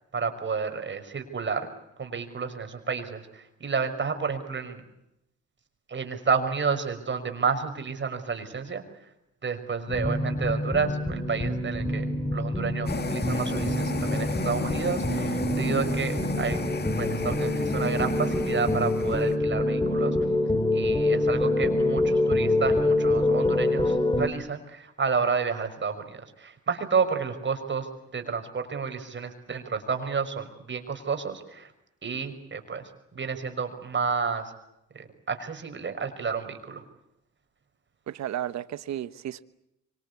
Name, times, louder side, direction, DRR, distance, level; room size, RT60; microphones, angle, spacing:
voice 1, 0.1-1.7 2.0-4.8 5.9-8.8 9.4-12.1 12.3-16.7 17.0-20.2 20.7-27.9 28.1-31.7 32.0-32.8 33.1-34.5 34.9-36.8, right 5 dB, 40° right, 6 dB, 5.8 m, -30 dB
sound 1, 9.9-24.3, left 1 dB, 15° left, 2.9 m, -26 dB
sound 2, 12.9-19.4, left 4 dB, 35° left, 2.1 m, -33 dB
voice 2, 38.1-39.4, right 11 dB, 65° right, 13 dB, 1.2 m, -33 dB
25.5 x 25.0 x 8.4 m, 0.85 s
cardioid pair, 90°, 30 cm